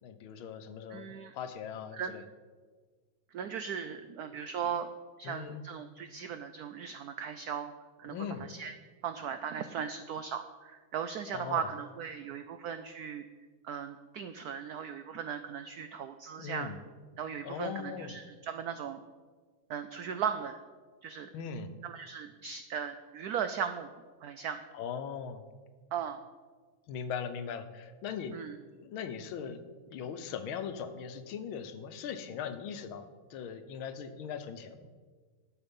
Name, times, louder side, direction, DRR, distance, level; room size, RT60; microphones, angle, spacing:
voice 1, 0.0-2.2 5.2-5.6 8.1-8.5 11.3-11.7 16.4-16.8 17.4-18.2 21.3-21.7 24.7-25.4 26.9-28.3 28.7-29.6 29.9-34.9, left 7 dB, 90° left, 9 dB, 1.7 m, -40 dB
voice 2, 0.9-1.3 1.9-2.1 3.3-4.9 5.2-7.7 8.0-8.1 8.5-8.7 9.0-13.2 13.6-16.7 17.2-19.0 19.7-20.6 21.0-21.3 21.8-23.9 24.2-24.6 25.9-26.2 28.3-28.5, right 7 dB, 85° right, 9 dB, 0.8 m, -37 dB
11.5 x 7.4 x 5.3 m, 1.5 s
omnidirectional pair, 2.2 m